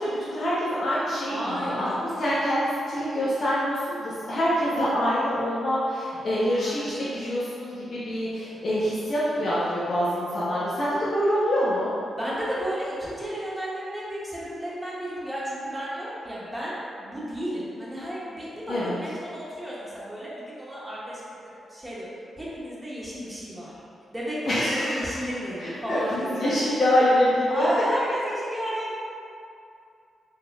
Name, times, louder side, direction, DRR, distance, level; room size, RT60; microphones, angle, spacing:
voice 1, 0.0-1.9 2.2-11.9 18.7-18.9 24.5-25.0 25.6-27.7, equal, 60° left, -10 dB, 0.9 m, -25 dB
voice 2, 1.3-2.1 6.5-7.1 12.2-21.4 21.7-22.1 22.4-23.7 24.1-26.7 27.5-28.9, equal, 10° right, -8 dB, 1.3 m, -33 dB
4.6 x 3.2 x 2.4 m, 2.5 s
hypercardioid pair, 40°, 0 cm